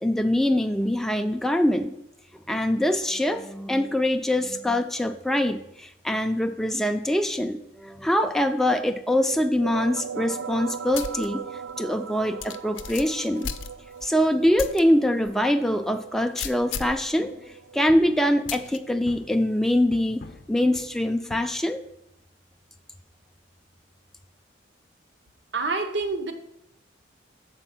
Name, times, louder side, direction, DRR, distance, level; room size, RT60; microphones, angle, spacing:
voice 1, 0.0-1.9 2.5-11.4 11.8-13.5 14.0-17.4 17.7-20.2 20.5-21.8, left 1 dB, ahead, 6 dB, 0.4 m, -24 dB
sound 1, 9.3-18.7, right 7 dB, 90° right, 0.4 m, -39 dB
sound 2, 10.9-11.3 11.7-11.8 12.4-14.1 14.6-14.8 15.3-15.4 16.4-17.0 18.5-18.8, left 7 dB, 90° left, 0.5 m, -34 dB
sound 3, 17.9-19.6 19.9-21.4, left 2 dB, 50° left, 0.6 m, -46 dB
voice 2, 25.5-26.3, right 3 dB, 65° right, 7 dB, 0.8 m, -27 dB
7.0 x 4.4 x 5.8 m, 0.80 s
head